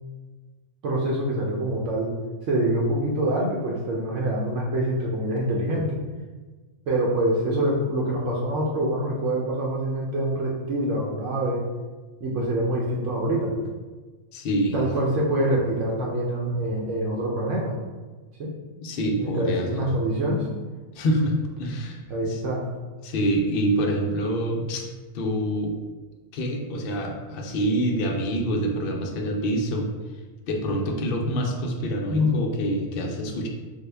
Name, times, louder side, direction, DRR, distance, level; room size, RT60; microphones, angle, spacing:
voice 1, 0.8-2.1 2.5-6.0 6.9-11.6 12.2-13.5 14.7-17.7 18.4-18.5 19.2-20.5 22.1-22.6 32.1-32.3, right 1 dB, 70° right, -3 dB, 0.9 m, -25 dB
voice 2, 14.3-15.1 18.8-19.9 20.9-22.0 22.2-22.4 23.0-24.9 25.1-25.7 26.3-29.9 30.5-33.5, equal, 60° left, 1 dB, 0.6 m, -26 dB
3.6 x 2.1 x 3.3 m, 1.3 s
omnidirectional pair, 1.3 m